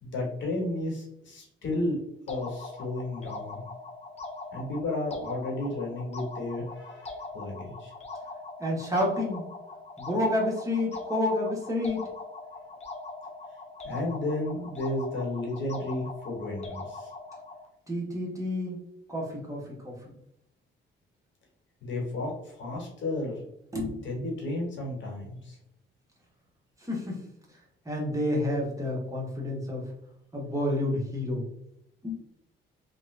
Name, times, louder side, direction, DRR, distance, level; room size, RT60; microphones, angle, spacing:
voice 1, 0.0-2.0 2.3-3.6 4.5-7.9 13.8-17.1 21.8-23.4 24.0-25.6, left 2 dB, 70° left, -1 dB, 1.3 m, -33 dB
sound 1, 2.3-17.7, left 3 dB, 35° left, 0.7 m, -41 dB
voice 2, 8.6-9.5 10.0-12.0 17.9-18.8 19.1-20.1 23.7-24.0 26.8-27.3 27.8-29.9 30.3-31.4 32.0-32.1, left 1 dB, 15° right, -3 dB, 1.1 m, -29 dB
2.8 x 2.4 x 3.2 m, 0.76 s
cardioid pair, 90°, 20 cm